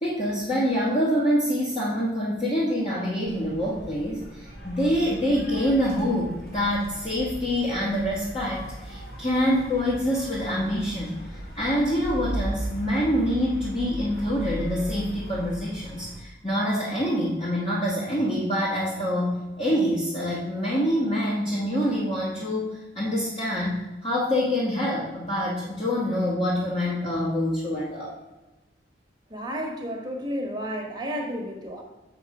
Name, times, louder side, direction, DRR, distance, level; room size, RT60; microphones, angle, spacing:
voice 1, 0.0-28.2, equal, 30° left, -7 dB, 1.4 m, -26 dB
sound 1, 3.3-16.2, right 1 dB, 60° left, 1.6 m, -37 dB
voice 2, 29.3-31.8, equal, 25° right, 1 dB, 1.2 m, -32 dB
7.1 x 5.9 x 4.8 m, 1.1 s
head